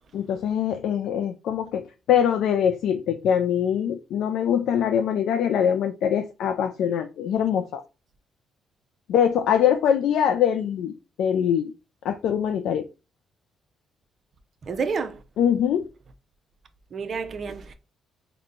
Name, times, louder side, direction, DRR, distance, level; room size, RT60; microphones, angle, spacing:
voice 1, 0.1-7.8 9.1-10.9 11.2-11.7 12.0-12.9 15.4-15.9, left 9 dB, 80° left, 0.3 m, -23 dB
voice 2, 14.6-15.2 16.9-17.7, right 5 dB, 50° right, 0.6 m, -29 dB
3.8 x 2.1 x 3.6 m
cardioid pair, 90°, 0 cm